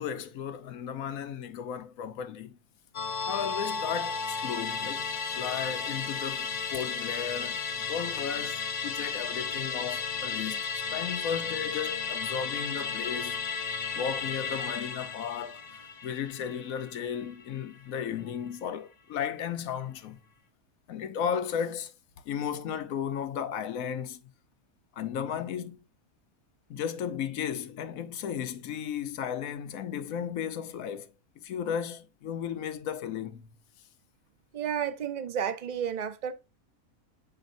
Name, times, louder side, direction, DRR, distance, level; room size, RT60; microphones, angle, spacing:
voice 1, 0.0-2.6 3.3-5.1 5.4-7.6 7.9-10.6 10.9-13.4 13.9-15.6 16.0-20.2 20.9-21.9 22.3-24.2 25.0-25.8 26.7-31.1 31.4-33.5, left 8 dB, 70° left, 1.1 m, -34 dB
Musical instrument, 2.9-17.6 17.9-18.0, left 5 dB, 85° left, 0.3 m, -34 dB
voice 2, 34.5-36.3, right 8 dB, 75° right, 0.4 m, -31 dB
7.7 x 4.8 x 2.6 m
omnidirectional pair, 1.6 m